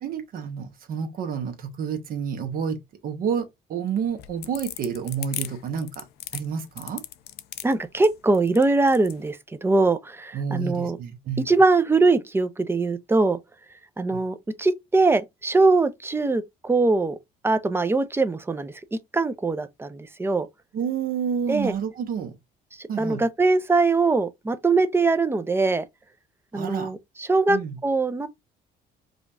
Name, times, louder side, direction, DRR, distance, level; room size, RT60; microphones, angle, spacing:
voice 1, 0.0-6.0 6.3-7.0 10.3-11.5 14.1-14.2 20.7-22.3 22.9-23.2 26.5-26.9 27.5-27.7, right 7 dB, 60° right, 1.0 m, -29 dB
sound 1, 4.1-9.2, left 13 dB, 70° left, 0.4 m, -37 dB
voice 2, 7.6-11.0 11.5-13.4 14.0-17.2 17.4-18.7 19.1-20.5 21.5-21.7 23.0-25.8 26.5-27.6 27.8-28.3, right 3 dB, 15° right, 0.5 m, -22 dB
4.9 x 2.3 x 2.5 m
cardioid pair, 110°, 17 cm